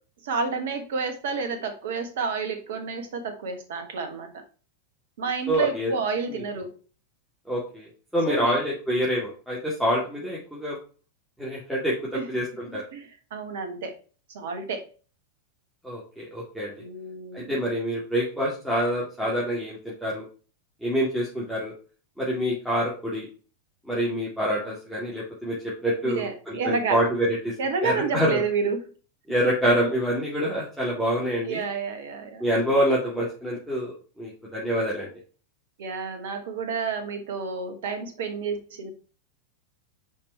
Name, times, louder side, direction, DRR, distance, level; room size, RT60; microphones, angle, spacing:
voice 1, 0.2-4.4 5.2-6.7 8.3-8.6 12.1-12.2 12.9-14.0 14.3-14.8 16.8-17.6 26.0-27.1 27.6-28.9 31.4-32.4 35.8-38.9, right 5 dB, 55° right, 6 dB, 1.4 m, -30 dB
voice 2, 5.5-5.9 6.3-6.4 7.5-10.8 11.4-12.8 15.8-16.7 17.3-20.2 20.8-21.7 22.2-23.3 23.9-25.6 25.8-27.5 27.8-28.4 29.3-31.6 32.4-35.1, equal, ahead, -7 dB, 2.3 m, -26 dB
5.3 x 5.3 x 4.3 m, 0.37 s
figure-of-eight pair, 90°, 0 cm